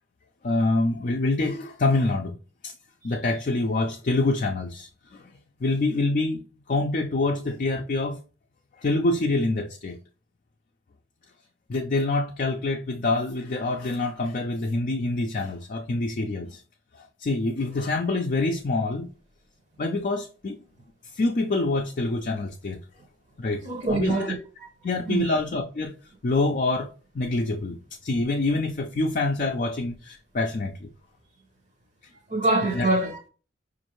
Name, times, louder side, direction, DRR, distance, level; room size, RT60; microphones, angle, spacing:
voice 1, 0.4-2.4 2.6-2.7 3.0-5.3 5.6-8.2 8.8-10.0 11.7-16.6 16.9-19.1 19.8-20.6 21.1-22.8 23.4-24.3 24.8-25.9 26.2-26.9 27.1-30.9 32.6-32.9, left 2 dB, 45° left, 0.4 m, -26 dB
voice 2, 23.6-24.7 25.1-25.3 32.3-33.3, right 2 dB, 40° right, 0.8 m, -25 dB
5.2 x 2.5 x 3.0 m
head